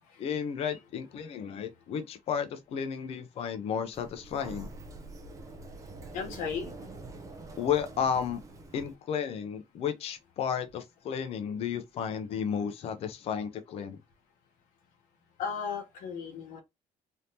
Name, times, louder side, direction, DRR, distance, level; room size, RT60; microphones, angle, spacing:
voice 1, 0.2-4.7 7.6-8.4 8.7-14.0, left 7 dB, 50° left, 0.6 m, -33 dB
Sliding door, 3.9-8.9, right 3 dB, 25° right, 0.5 m, -45 dB
voice 2, 6.1-6.7 15.4-16.6, left 6 dB, 85° left, 1.1 m, -35 dB
3.4 x 2.7 x 2.7 m
cardioid pair, 155°, 13 cm